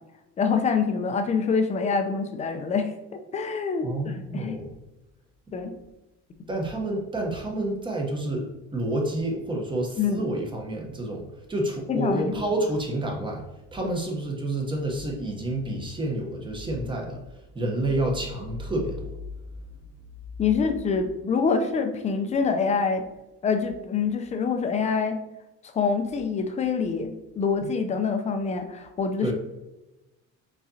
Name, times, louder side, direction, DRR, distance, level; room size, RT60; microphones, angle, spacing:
voice 1, 0.4-2.9 3.3-4.6 5.5-5.8 10.0-10.2 11.9-12.4 13.8-14.0 20.4-23.0 23.4-25.2 25.6-29.3, left 5 dB, 25° left, 6 dB, 0.5 m, -26 dB
voice 2, 3.8-4.7 6.5-13.4 13.7-17.2 17.5-19.1 29.2-29.3, right 1 dB, 15° right, 0 dB, 0.9 m, -29 dB
4.9 x 4.0 x 2.7 m, 1.0 s
cardioid pair, 140°, 30 cm